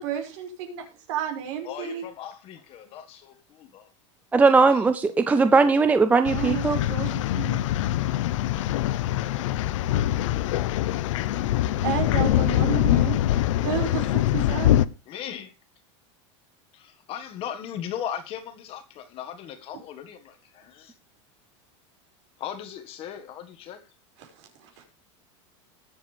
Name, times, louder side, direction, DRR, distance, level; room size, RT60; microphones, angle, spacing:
voice 1, 0.0-2.0 6.2-7.6 8.5-8.7 11.8-13.2 13.6-14.8 24.2-24.8, right 9 dB, 60° right, 5.5 m, -32 dB
voice 2, 1.6-3.9 4.7-4.9 5.5-5.6 8.9-9.2 15.1-15.5 16.7-20.9 22.4-23.8, left 9 dB, 35° left, 1.6 m, -38 dB
voice 3, 4.3-6.8, right 4 dB, 10° right, 0.5 m, -19 dB
sound 1, 6.2-14.9, left 13 dB, 85° left, 0.7 m, -24 dB
19.5 x 7.9 x 3.4 m
supercardioid pair, 155°, 16 cm